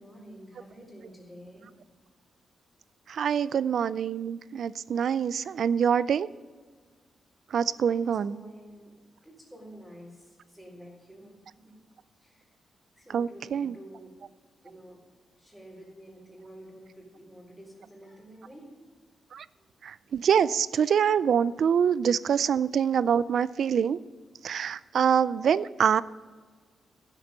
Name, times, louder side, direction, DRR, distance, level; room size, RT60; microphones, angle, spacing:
voice 1, 0.0-1.6 7.6-8.9 9.2-11.7 12.2-12.5 12.9-14.1 14.6-15.0 15.4-18.7 19.6-19.7 21.6-21.9, equal, ahead, -10 dB, 4.6 m, -49 dB
voice 2, 3.1-6.3 7.5-8.4 13.1-13.7 19.3-19.4 19.8-24.0 24.4-26.0, right 7 dB, 65° right, 18 dB, 0.4 m, -25 dB
15.5 x 7.3 x 5.5 m, 1.5 s
cardioid pair, 125°, 0 cm